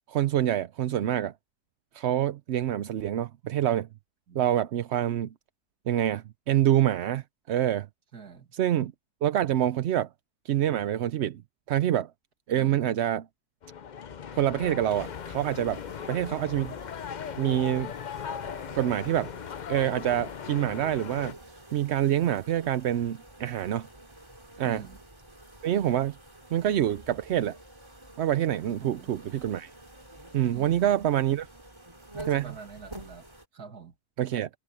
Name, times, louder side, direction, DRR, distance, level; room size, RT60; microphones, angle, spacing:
voice 1, 0.1-1.3 1.9-3.9 4.3-5.3 5.9-7.9 8.5-8.9 9.2-10.1 10.4-11.4 11.7-12.1 12.5-13.3 14.3-15.8 16.1-16.8 17.4-17.9 18.7-19.3 19.7-21.3 21.7-23.9 24.6-24.9 25.6-26.2 26.5-27.6 28.2-29.7 30.3-31.5 32.2-32.6 34.2-34.5, right 11 dB, 65° right, 0.7 m, -26 dB
voice 2, 8.1-8.5 12.6-12.8 24.6-25.0 28.8-29.1 30.5-30.7 32.1-33.3 33.5-33.9, right 6 dB, 80° right, 2.8 m, -44 dB
sound 1, 13.6-21.3, left 7 dB, 60° left, 0.4 m, -38 dB
sound 2, 14.9-33.5, right 1 dB, 20° right, 2.7 m, -49 dB
omnidirectional pair, 1.6 m